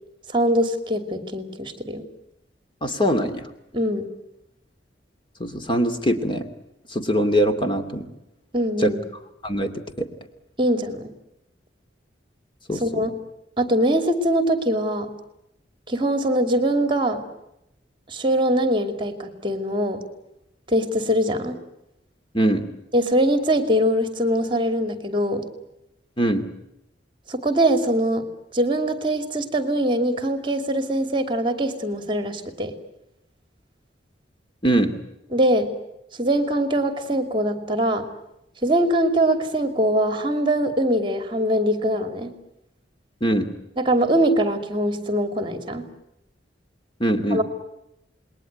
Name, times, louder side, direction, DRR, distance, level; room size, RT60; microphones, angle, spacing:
voice 1, 0.3-2.0 3.7-4.1 8.5-9.0 10.6-11.1 12.7-13.1 13.6-15.1 15.9-17.2 18.1-20.0 20.7-21.6 22.9-25.5 27.3-28.2 28.5-32.7 35.3-35.7 36.2-38.1 38.6-42.3 43.8-45.8 47.3-47.4, right 1 dB, 30° right, 8 dB, 2.7 m, -22 dB
voice 2, 2.8-3.5 5.4-6.5 6.9-8.0 8.8-8.9 9.4-9.7 10.0-10.1 12.7-13.1 22.3-22.6 26.2-26.5 34.6-34.9 43.2-43.5 47.0-47.4, equal, 25° left, 7 dB, 2.5 m, -22 dB
29.0 x 21.0 x 9.5 m, 0.86 s
head